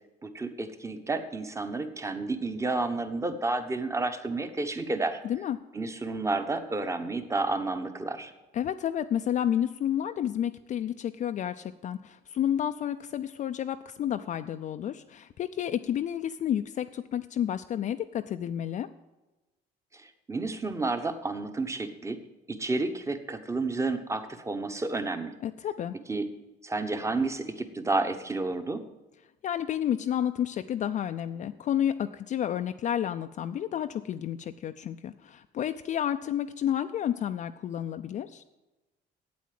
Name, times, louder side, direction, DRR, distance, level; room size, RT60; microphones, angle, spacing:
voice 1, 0.2-5.2 5.7-8.3 19.9-22.2 22.5-25.4 26.1-26.3 26.6-28.8, right 3 dB, 15° right, 8 dB, 1.0 m, -31 dB
voice 2, 5.2-5.6 8.5-18.9 25.4-25.9 29.4-38.4, left 10 dB, 45° left, 8 dB, 0.4 m, -30 dB
8.5 x 8.3 x 7.6 m, 1.1 s
cardioid pair, 110°, 17 cm